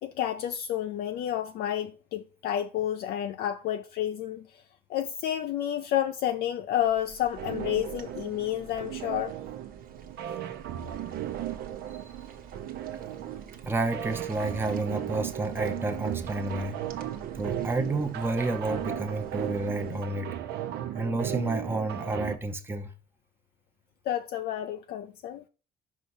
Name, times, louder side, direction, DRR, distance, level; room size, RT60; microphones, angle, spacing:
voice 1, 0.0-4.6 4.9-9.4 24.1-25.4, left 11 dB, 65° left, 0.5 m, -30 dB
sound 1, 6.8-20.0, right 6 dB, 60° right, 1.1 m, -50 dB
sound 2, 7.4-22.4, right 11 dB, 75° right, 0.8 m, -36 dB
voice 2, 13.7-16.8 17.3-20.3 20.9-22.9, right 2 dB, 15° right, 0.7 m, -30 dB
5.3 x 4.9 x 4.2 m
cardioid pair, 110°, 17 cm